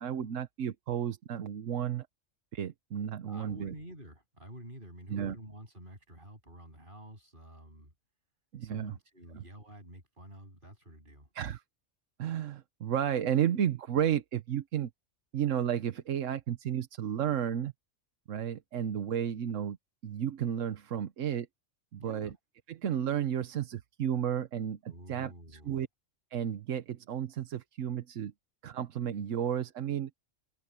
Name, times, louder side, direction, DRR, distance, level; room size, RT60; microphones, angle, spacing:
voice 1, 0.0-2.1 2.5-3.7 5.1-5.4 8.5-9.0 9.3-9.4 11.3-11.6 12.2-14.9 15.3-17.7 18.3-19.8 20.0-21.5 21.9-22.3 22.7-25.9 26.3-28.3 28.6-30.1, right 9 dB, 85° right, 1.2 m, -32 dB
voice 2, 3.3-7.9 8.6-11.3 22.0-22.4 24.9-25.8, right 1 dB, 45° right, 8.2 m, -49 dB
omnidirectional pair, 1.3 m